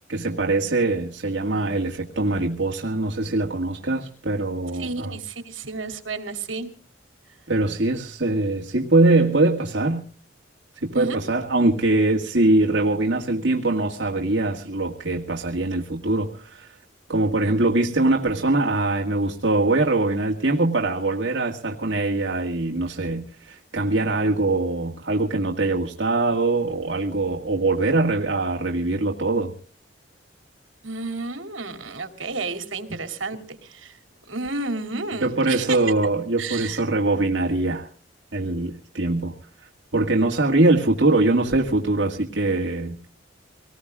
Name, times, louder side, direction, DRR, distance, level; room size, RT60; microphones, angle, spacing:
voice 1, 0.1-5.2 7.5-10.0 10.8-16.8 17.1-29.5 35.2-37.9 38.3-39.3 39.9-43.0, right 2 dB, 70° right, 0 dB, 1.9 m, -22 dB
voice 2, 4.7-6.7 10.9-11.2 30.8-34.0 34.3-35.8 36.4-36.8, right 3 dB, 90° right, 6 dB, 2.8 m, -31 dB
26.5 x 19.0 x 2.4 m, 0.42 s
head